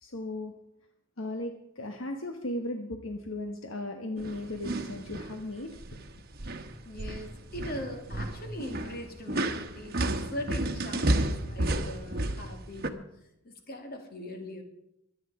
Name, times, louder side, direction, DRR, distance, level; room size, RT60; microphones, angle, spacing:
voice 1, 0.0-0.5 1.2-6.0, left 1 dB, 70° left, 5 dB, 1.3 m, -36 dB
sound 1, 4.2-5.3 5.7-6.1 6.4-12.9, right 1 dB, 50° right, 1.1 m, -32 dB
voice 2, 6.8-13.1 13.4-14.6, left 1 dB, 50° left, 4 dB, 2.4 m, -40 dB
23.5 x 9.2 x 4.9 m, 0.81 s
head